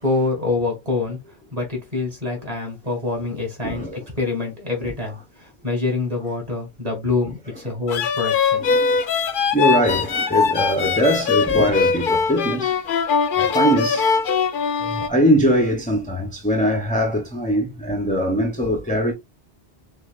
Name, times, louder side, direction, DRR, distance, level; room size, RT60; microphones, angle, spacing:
voice 1, 0.0-8.7, left 3 dB, 35° right, 2.9 m, -26 dB
voice 2, 3.6-4.0 8.6-9.0 9.5-12.8 13.4-14.1 14.8-19.1, equal, 10° left, 0.7 m, -21 dB
sound 1, 7.9-15.1, left 5 dB, 60° left, 0.8 m, -21 dB
6.5 x 2.7 x 2.5 m
omnidirectional pair, 1.0 m